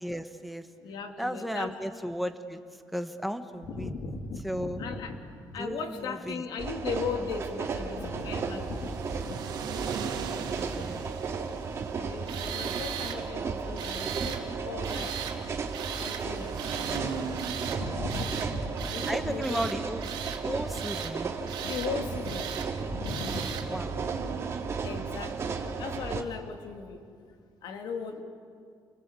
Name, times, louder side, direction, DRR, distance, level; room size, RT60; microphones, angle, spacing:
voice 1, 0.0-0.7 1.2-2.6 2.9-3.9 4.4-4.8 5.6-6.4 10.6-11.1 19.1-20.1 20.4-21.3 23.7-23.9, equal, ahead, 7 dB, 1.3 m, -34 dB
voice 2, 0.8-1.7 3.6-5.2 5.5-9.4 12.0-15.2 16.0-17.3 17.6-19.7 21.6-22.6 22.9-23.6 24.8-27.0 27.6-28.2, left 4 dB, 70° left, 4 dB, 3.0 m, -37 dB
sound 1, 6.6-26.2, right 5 dB, 35° right, 2.3 m, -34 dB
sound 2, 7.7-25.6, right 6 dB, 65° right, 2.7 m, -42 dB
Tools, 12.3-13.2 13.8-14.4 14.8-15.4 15.7-16.2 16.6-17.0 17.4-17.8 18.1-18.5 18.8-19.2 19.4-20.4 20.7-21.1 21.5-21.9 22.3-22.7 23.0-23.7, right 9 dB, 85° right, 2.8 m, -38 dB
29.5 x 24.0 x 8.4 m, 2.2 s
cardioid pair, 150°, 8 cm